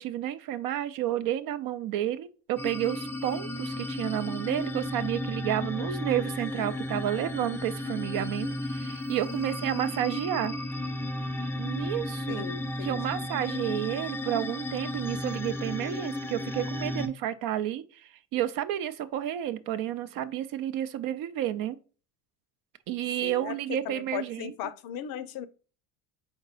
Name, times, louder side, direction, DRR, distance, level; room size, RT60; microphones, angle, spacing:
voice 1, 0.0-10.5 11.4-12.5 12.8-21.8 22.9-24.5, right 12 dB, 55° right, 0.5 m, -31 dB
sound 1, 2.6-17.1, left 1 dB, 5° left, 0.4 m, -34 dB
voice 2, 12.3-13.2 23.2-25.5, left 11 dB, 55° left, 0.6 m, -38 dB
4.4 x 3.9 x 2.4 m
hypercardioid pair, 70°, 42 cm